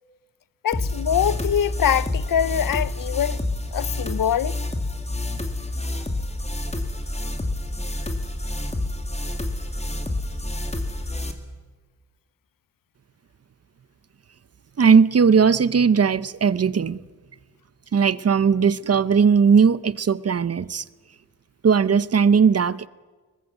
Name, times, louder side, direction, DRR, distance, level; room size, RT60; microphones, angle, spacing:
voice 1, 0.6-3.4 3.7-4.6, left 9 dB, 75° left, 0.6 m, -23 dB
sound 1, 0.7-11.3, left 2 dB, 20° left, 2.2 m, -28 dB
voice 2, 14.8-17.0 17.9-20.8 21.6-22.9, right 6 dB, 45° right, 0.7 m, -18 dB
22.5 x 20.0 x 8.1 m
wide cardioid pair, 150°, 34 cm